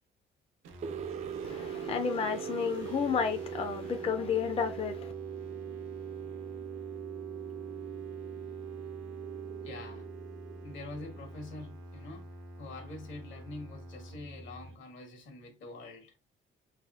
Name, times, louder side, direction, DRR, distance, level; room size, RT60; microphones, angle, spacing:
sound 1, 0.6-14.8, right 1 dB, 80° right, 0.7 m, -48 dB
sound 2, 0.8-11.7, right 9 dB, 35° right, 0.4 m, -41 dB
voice 1, 1.4-5.1, left 6 dB, 30° left, 0.4 m, -32 dB
voice 2, 9.6-10.1 10.6-16.2, left 2 dB, 75° left, 1.4 m, -45 dB
3.3 x 3.3 x 2.4 m
cardioid pair, 90°, 20 cm